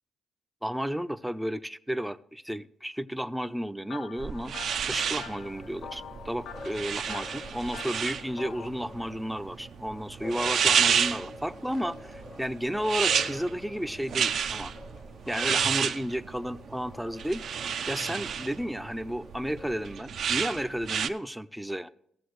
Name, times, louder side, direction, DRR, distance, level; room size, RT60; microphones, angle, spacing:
voice 1, 0.6-4.5 4.8-14.7 15.3-21.9, equal, 5° right, 11 dB, 0.5 m, -33 dB
sound 1, 3.9-8.7, left 9 dB, 70° left, 0.4 m, -46 dB
sound 2, 4.2-21.1, right 7 dB, 65° right, 0.5 m, -31 dB
sound 3, 5.0-20.0, left 3 dB, 35° left, 0.8 m, -48 dB
16.5 x 7.1 x 3.1 m, 0.73 s
cardioid pair, 90°, 0 cm